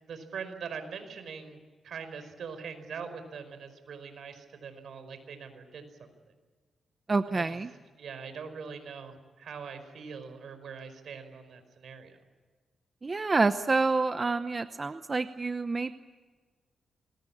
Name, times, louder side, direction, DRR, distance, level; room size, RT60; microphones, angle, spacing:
voice 1, 0.1-6.1 7.3-7.6 8.0-12.2, right 6 dB, 70° right, 9 dB, 4.9 m, -42 dB
voice 2, 7.1-7.7 13.0-15.9, right 3 dB, 30° right, 10 dB, 0.8 m, -28 dB
27.5 x 21.5 x 8.8 m, 1.4 s
cardioid pair, 110°, 0 cm